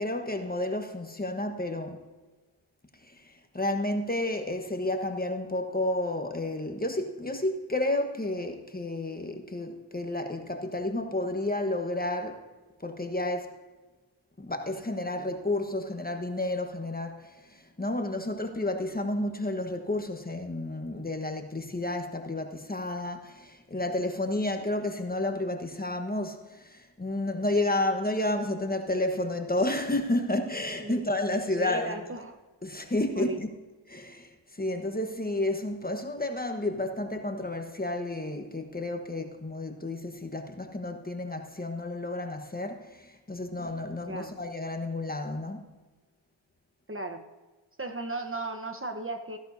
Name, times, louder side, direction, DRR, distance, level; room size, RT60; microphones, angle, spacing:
voice 1, 0.0-2.0 3.0-12.4 12.8-13.6 14.4-32.0 32.6-33.5 33.9-45.6, left 1 dB, 20° left, 1.2 m, -31 dB
voice 2, 31.5-32.4 33.2-33.4 44.1-44.4 46.9-47.2 47.8-49.4, right 2 dB, 25° right, 1.1 m, -35 dB
15.5 x 11.0 x 2.7 m
cardioid pair, 80°, 48 cm